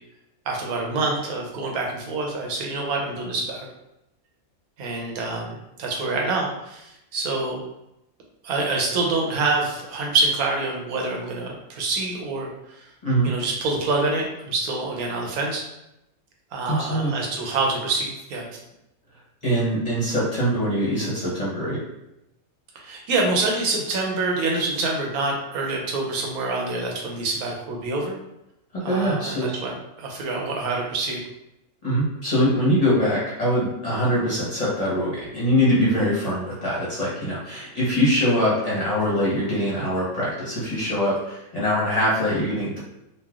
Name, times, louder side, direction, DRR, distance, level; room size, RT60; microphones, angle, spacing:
voice 1, 0.5-3.7 4.8-7.6 8.4-12.5 12.7-12.9 13.2-15.6 16.5-18.6 22.7-28.2 28.8-31.2, right 3 dB, 90° right, 0 dB, 1.1 m, -26 dB
voice 2, 16.7-17.1 19.4-21.8 28.7-29.5 31.8-42.8, equal, 35° left, -8 dB, 0.7 m, -23 dB
3.1 x 2.3 x 2.3 m, 0.87 s
omnidirectional pair, 1.5 m